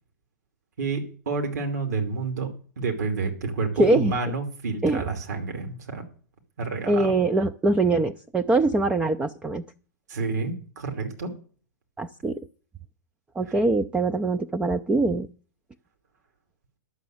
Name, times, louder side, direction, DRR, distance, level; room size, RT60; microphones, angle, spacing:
voice 1, 0.8-2.5 2.8-6.0 6.6-7.2 10.1-11.3, right 4 dB, 65° right, 4 dB, 2.7 m, -29 dB
voice 2, 3.8-4.2 4.8-5.0 6.9-9.6 12.0-12.4 13.4-15.3, right 2 dB, 10° right, 6 dB, 0.5 m, -23 dB
11.5 x 6.8 x 7.8 m, 0.42 s
figure-of-eight pair, 105°, 10 cm